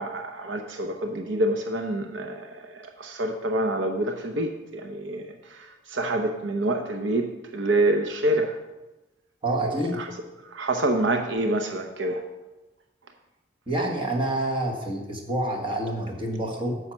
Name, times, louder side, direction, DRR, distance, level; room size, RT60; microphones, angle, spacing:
voice 1, 0.0-8.6 9.6-10.1 10.4-12.3, right 1 dB, 70° right, 5 dB, 0.8 m, -27 dB
voice 2, 9.4-10.0 13.7-16.8, right 1 dB, 30° right, 2 dB, 1.6 m, -27 dB
9.7 x 6.6 x 6.0 m, 1.1 s
head